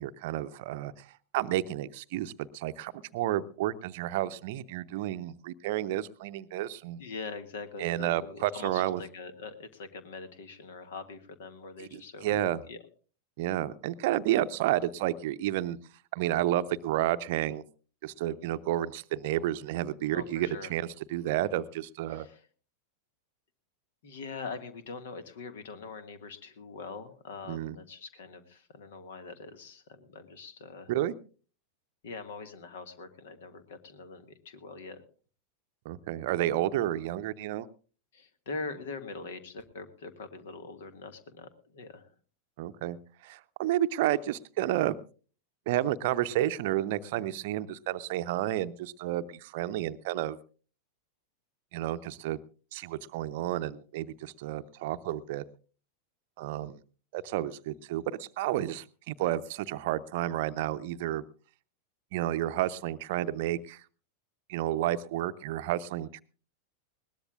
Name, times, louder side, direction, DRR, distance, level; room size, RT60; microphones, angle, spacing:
voice 1, 0.0-7.0 7.8-9.0 11.8-12.6 13.4-15.8 16.1-17.6 18.0-22.3 27.5-27.8 30.9-31.1 35.8-37.7 42.6-43.0 43.2-45.0 45.7-50.4 51.7-52.4 52.7-55.4 56.4-56.8 57.1-61.2 62.1-63.8 64.5-66.2, right 13 dB, 50° right, 13 dB, 0.7 m, -31 dB
voice 2, 7.0-12.4 12.7-12.8 20.1-20.7 22.1-22.4 24.0-30.9 32.0-35.0 38.1-42.1, left 4 dB, 60° left, 11 dB, 1.8 m, -43 dB
21.0 x 18.5 x 2.4 m, 0.38 s
figure-of-eight pair, 90°, 0 cm